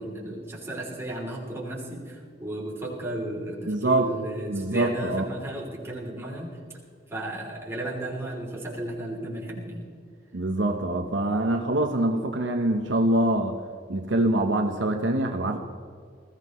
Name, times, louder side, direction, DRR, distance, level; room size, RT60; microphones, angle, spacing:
voice 1, 0.0-6.6 7.1-9.9, right 1 dB, 15° right, -3 dB, 3.1 m, -34 dB
voice 2, 3.7-4.1 4.5-5.2 10.3-13.6 13.9-15.6, right 1 dB, 65° right, 4 dB, 0.9 m, -24 dB
20.5 x 14.5 x 3.1 m, 2.1 s
head